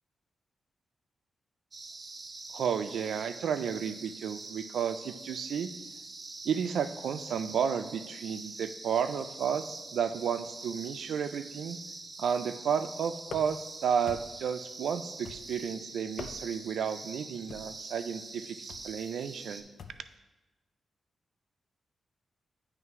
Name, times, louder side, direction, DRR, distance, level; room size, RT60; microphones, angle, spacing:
sound 1, 1.7-19.6, right 3 dB, 35° right, 0.7 m, -45 dB
voice 1, 2.5-5.7 6.4-11.8 12.2-19.6, right 7 dB, 90° right, 11 dB, 0.3 m, -32 dB
sound 2, 13.2-13.7 14.1-14.5 15.2-15.7 16.0-16.7 17.5-17.8 18.7-19.0 19.8-20.1, left 5 dB, 70° left, 0.4 m, -45 dB
9.3 x 3.2 x 4.7 m, 1.1 s
cardioid pair, 100°, 0 cm